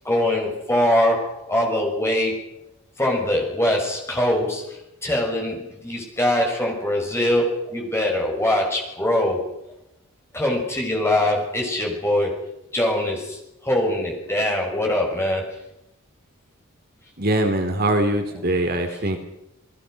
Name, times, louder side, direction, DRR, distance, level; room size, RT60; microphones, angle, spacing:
voice 1, 0.0-2.5 3.0-9.4 10.3-12.4 12.7-15.6, left 1 dB, 10° left, 0 dB, 5.9 m, -23 dB
voice 2, 17.2-19.2, right 1 dB, 45° right, 5 dB, 2.7 m, -22 dB
29.0 x 19.5 x 6.4 m, 0.84 s
head